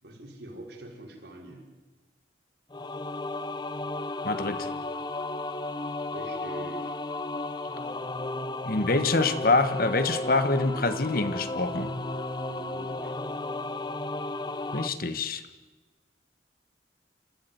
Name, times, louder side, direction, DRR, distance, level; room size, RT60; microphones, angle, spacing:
voice 1, 0.0-1.7 6.1-7.0 12.5-13.1, right 1 dB, 65° right, 0 dB, 5.0 m, -43 dB
sound 1, 2.7-14.9, left 2 dB, 25° left, 0.7 m, -34 dB
voice 2, 4.2-4.7 8.6-11.9 14.7-15.4, left 3 dB, 50° left, 10 dB, 1.4 m, -25 dB
27.0 x 14.5 x 9.4 m, 1.2 s
head